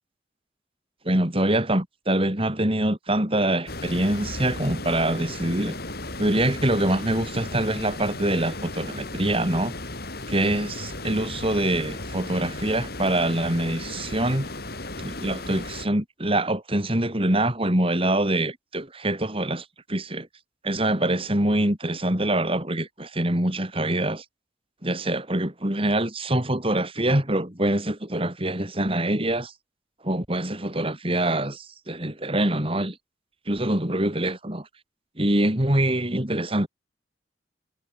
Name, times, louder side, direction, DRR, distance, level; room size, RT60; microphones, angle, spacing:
voice 1, 1.1-5.8 6.2-9.7 10.3-14.5 15.0-20.3 20.6-24.3 24.8-29.5 30.0-33.0 33.5-34.7 35.2-36.7, right 1 dB, 30° right, 3.7 m, -24 dB
sound 1, 3.7-15.9, left 2 dB, 55° left, 5.3 m, -35 dB
head